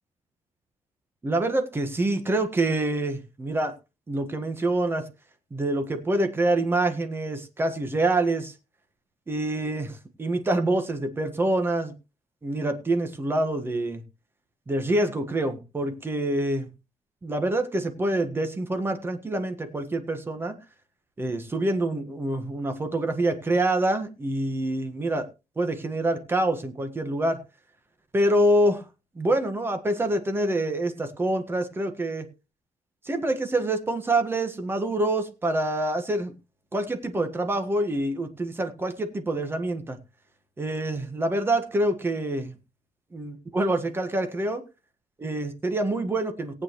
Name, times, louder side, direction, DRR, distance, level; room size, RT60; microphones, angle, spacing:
voice 1, 1.2-3.7 4.1-5.1 5.5-8.5 9.3-11.9 12.4-14.0 14.7-16.7 17.2-20.6 21.2-25.2 25.6-27.4 28.1-28.8 29.1-32.3 33.0-36.3 36.7-40.0 40.6-42.5 43.1-44.6 45.2-46.6, right 1 dB, 20° right, 7 dB, 1.4 m, -26 dB
18.5 x 8.8 x 3.0 m, 0.28 s
wide cardioid pair, 165°, 12 cm